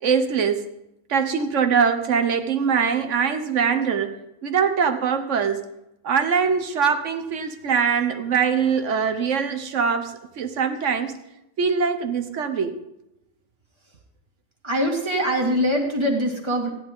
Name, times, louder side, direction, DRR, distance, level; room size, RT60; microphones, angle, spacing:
voice 1, 0.0-0.6 1.1-4.2 4.4-5.7 6.0-11.2 11.6-12.8, right 6 dB, 75° right, 9 dB, 1.3 m, -22 dB
voice 2, 14.6-16.7, equal, 20° right, 0 dB, 2.1 m, -23 dB
14.5 x 10.5 x 3.7 m, 0.89 s
omnidirectional pair, 1.3 m